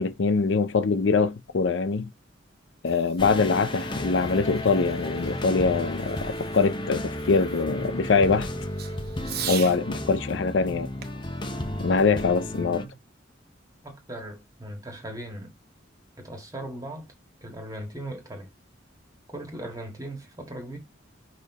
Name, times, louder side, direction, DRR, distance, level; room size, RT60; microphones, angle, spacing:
voice 1, 0.0-2.1 2.8-8.5 9.5-10.9 11.8-12.8, left 4 dB, 75° left, 0.5 m, -23 dB
Fireworks, 2.6-9.8 11.0-12.6, right 9 dB, 55° right, 0.9 m, -42 dB
sound 1, 3.2-12.9, left 1 dB, 25° left, 0.8 m, -33 dB
voice 2, 12.5-12.9 13.8-15.5 16.2-17.1 17.4-18.5 19.3-20.8, right 1 dB, 20° right, 1.7 m, -38 dB
5.3 x 4.3 x 4.1 m
head